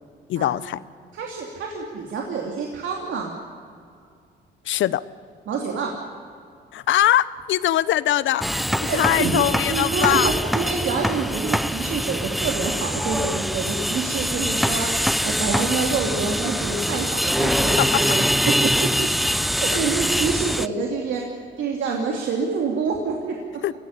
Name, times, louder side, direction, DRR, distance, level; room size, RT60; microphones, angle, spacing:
voice 1, 0.3-0.8 4.7-5.0 6.7-8.4 8.8-10.3 17.8-17.9 23.6-23.7, left 13 dB, 75° left, 17 dB, 0.8 m, -21 dB
voice 2, 1.1-3.3 5.5-6.0 8.8-18.9 19.6-21.2 21.6-23.4, right 5 dB, 75° right, 0 dB, 2.8 m, -27 dB
sound 1, 8.4-20.7, equal, ahead, 0.6 m, -23 dB
23.5 x 16.5 x 9.9 m, 2.3 s
cardioid pair, 90°, 20 cm